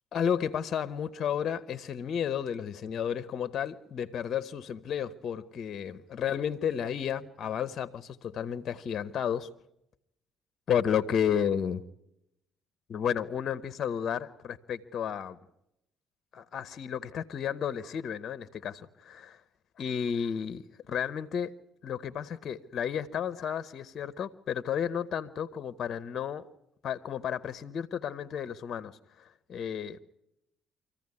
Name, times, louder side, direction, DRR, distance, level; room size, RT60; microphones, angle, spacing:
voice 1, 0.1-9.5 10.7-11.8 12.9-15.4 16.3-19.4 19.8-21.5 21.8-26.4 26.8-30.0, left 8 dB, 55° left, 0.8 m, -32 dB
24.5 x 15.0 x 9.7 m
hypercardioid pair, 55°, 0 cm